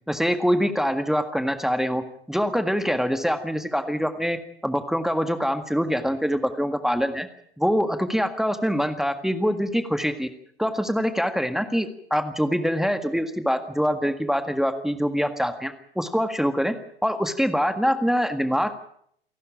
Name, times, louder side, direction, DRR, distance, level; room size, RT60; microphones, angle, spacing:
voice 1, 0.1-2.0 2.3-4.4 4.6-7.3 7.6-10.3 10.6-16.7 17.0-18.7, equal, ahead, 9 dB, 1.7 m, -24 dB
28.0 x 12.0 x 8.9 m, 0.67 s
figure-of-eight pair, 90°, 30 cm